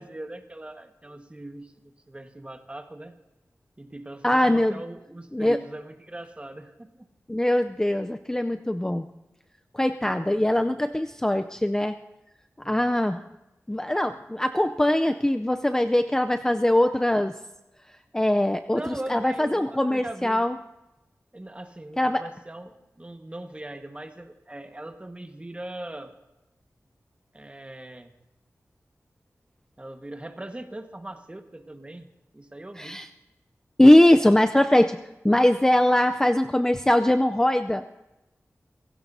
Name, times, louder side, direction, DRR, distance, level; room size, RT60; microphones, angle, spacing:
voice 1, 0.0-3.2 3.8-7.1 12.6-12.9 18.7-20.4 21.3-26.1 27.3-28.1 29.8-32.1 32.3-33.0, right 1 dB, 20° right, 6 dB, 1.4 m, -40 dB
voice 2, 4.2-4.8 5.3-5.6 7.3-9.1 9.7-12.0 12.6-13.2 13.7-17.3 18.1-20.5 22.0-22.2 32.8-33.1 33.8-35.0 35.2-37.8, left 1 dB, 10° left, 7 dB, 0.5 m, -21 dB
27.0 x 16.5 x 2.7 m, 0.97 s
wide cardioid pair, 85°, 5 cm